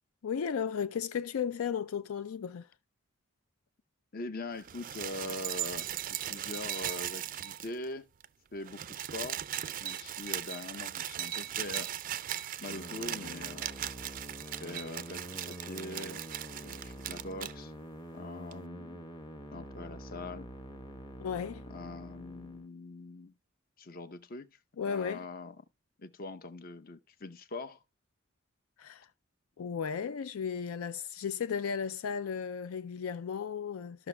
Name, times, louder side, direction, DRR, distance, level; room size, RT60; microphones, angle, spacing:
voice 1, 0.2-2.7 21.2-21.6 24.8-25.2 28.8-29.1 29.6-34.1, left 7 dB, 85° left, 0.4 m, -35 dB
voice 2, 4.1-8.1 8.5-9.5 9.8-11.9 12.6-13.7 14.5-16.3 16.5-17.7 18.1-19.0 19.5-20.5 21.7-23.3 23.8-25.6 26.0-27.8, left 2 dB, 45° left, 0.7 m, -42 dB
sound 1, 4.6-7.9 8.2-8.3 8.5-17.5 18.5-18.6, right 12 dB, 40° right, 0.3 m, -38 dB
sound 2, 12.7-22.7, right 1 dB, 20° left, 1.0 m, -46 dB
14.0 x 6.0 x 2.2 m
head